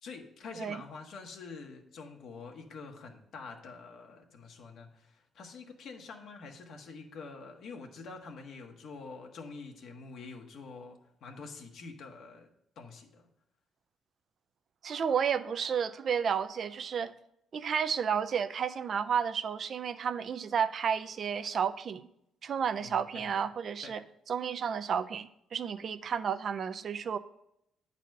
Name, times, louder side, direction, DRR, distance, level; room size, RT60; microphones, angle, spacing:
voice 1, 0.0-12.5 12.8-13.3 22.8-23.4 23.8-24.0, left 4 dB, 70° left, 2 dB, 1.4 m, -46 dB
voice 2, 14.8-17.1 17.5-22.1 22.4-24.0 24.3-27.2, right 7 dB, 55° right, 12 dB, 0.5 m, -32 dB
9.2 x 4.1 x 6.4 m, 0.78 s
cardioid pair, 90°, 0 cm